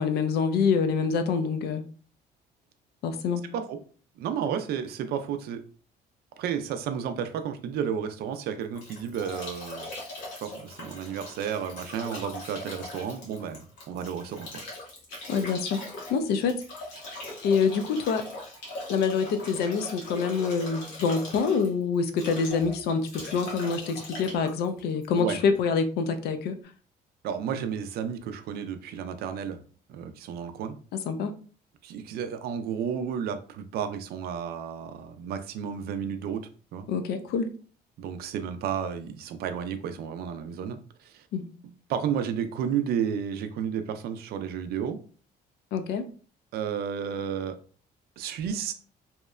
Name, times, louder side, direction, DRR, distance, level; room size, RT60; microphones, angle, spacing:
voice 1, 0.0-1.8 3.0-3.4 15.3-15.8 16.1-16.6 17.4-18.2 18.9-26.5 31.1-31.3 36.9-37.5 41.3-41.4 45.7-46.0, left 5 dB, 70° left, 9 dB, 0.4 m, -26 dB
voice 2, 3.4-3.8 4.2-5.6 6.4-9.9 10.4-14.6 25.2-25.4 27.2-29.6 29.9-30.8 31.8-36.9 38.0-41.3 41.9-45.0 46.5-47.5 48.2-48.7, right 8 dB, 70° right, 9 dB, 0.4 m, -32 dB
Bathtub (filling or washing) / Drip / Trickle dribble, 8.3-25.6, left 2 dB, 90° left, 1.0 m, -41 dB
2.8 x 2.1 x 2.3 m, 0.41 s
cardioid pair, 110°, 17 cm